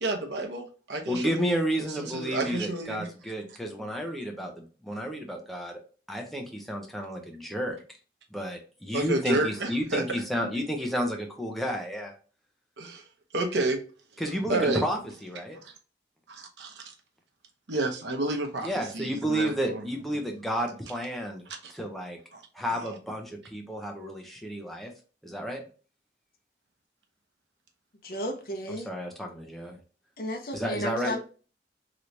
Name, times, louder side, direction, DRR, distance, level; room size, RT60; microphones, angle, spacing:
voice 1, 0.0-3.1 4.1-4.2 8.9-10.2 12.8-13.0 13.3-13.8 14.5-14.8 15.6-15.7 16.3-16.9 17.7-19.9 21.6-21.7 22.3-22.4 22.7-22.9, right 2 dB, 90° right, 4 dB, 0.8 m, -30 dB
voice 2, 1.1-5.8 6.1-7.8 8.3-12.1 14.2-15.6 18.6-22.2 22.5-24.9 25.2-25.6 28.9-29.8 30.5-31.2, equal, ahead, 2 dB, 0.6 m, -31 dB
voice 3, 28.0-28.9 30.2-31.2, equal, 55° left, 3 dB, 0.7 m, -33 dB
3.2 x 3.0 x 2.6 m, 0.38 s
head